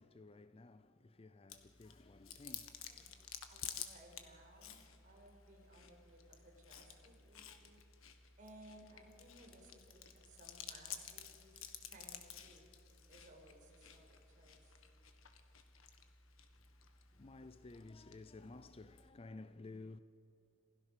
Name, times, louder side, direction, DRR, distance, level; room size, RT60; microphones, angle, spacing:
voice 1, 0.0-3.3 17.1-20.0, left 3 dB, 25° left, 0.4 m, -54 dB
Chewing mastication, 1.5-19.1, left 9 dB, 70° left, 1.7 m, -53 dB
voice 2, 3.5-7.8 8.4-12.7 13.0-14.8, right 1 dB, 35° right, 5.1 m, -61 dB
27.5 x 17.0 x 6.7 m
head